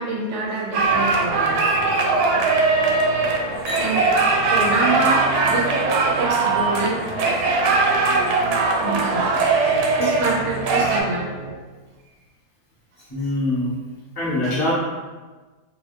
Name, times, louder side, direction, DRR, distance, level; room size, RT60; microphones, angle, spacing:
voice 1, 0.0-1.5 3.8-5.7 6.2-7.0 8.8-9.5 10.0-11.3, right 2 dB, 55° right, -3 dB, 1.0 m, -26 dB
sound 1, 0.7-11.0, right 3 dB, 80° right, 1.1 m, -20 dB
sound 2, 0.8-11.5, right 1 dB, 85° left, 1.3 m, -35 dB
voice 2, 13.1-13.7 14.1-14.7, left 1 dB, 15° left, -9 dB, 1.0 m, -24 dB
3.1 x 3.0 x 3.2 m, 1.3 s
omnidirectional pair, 1.7 m